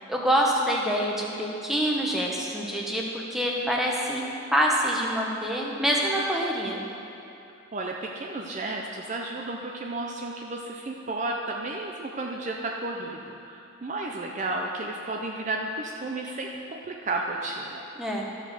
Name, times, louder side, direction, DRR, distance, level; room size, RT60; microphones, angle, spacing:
voice 1, 0.1-3.0 3.3-6.8 18.0-18.3, equal, ahead, -2 dB, 0.9 m, -26 dB
voice 2, 7.7-17.8, right 2 dB, 35° right, 0 dB, 0.5 m, -33 dB
13.0 x 4.8 x 6.6 m, 2.7 s
head